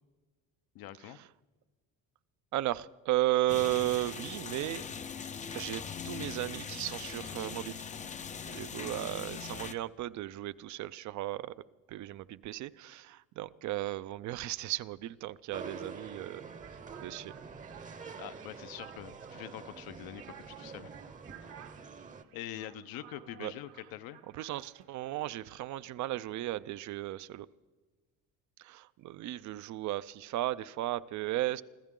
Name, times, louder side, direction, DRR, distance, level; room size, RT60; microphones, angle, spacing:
voice 1, 0.7-1.2 18.2-20.9 22.3-24.2, left 12 dB, 75° left, 12 dB, 0.8 m, -44 dB
voice 2, 2.5-4.8 5.5-7.8 8.4-11.5 11.9-17.4 23.4-23.5 24.3-27.5 28.6-31.6, right 15 dB, 55° right, 16 dB, 0.5 m, -35 dB
sound 1, 3.5-9.7, left 6 dB, 20° left, 0.5 m, -41 dB
sound 2, 15.5-22.2, right 5 dB, 20° right, 0.8 m, -47 dB
sound 3, 16.6-25.8, right 11 dB, 85° right, 1.7 m, -56 dB
25.0 x 15.0 x 3.8 m, 1.3 s
cardioid pair, 155°, 36 cm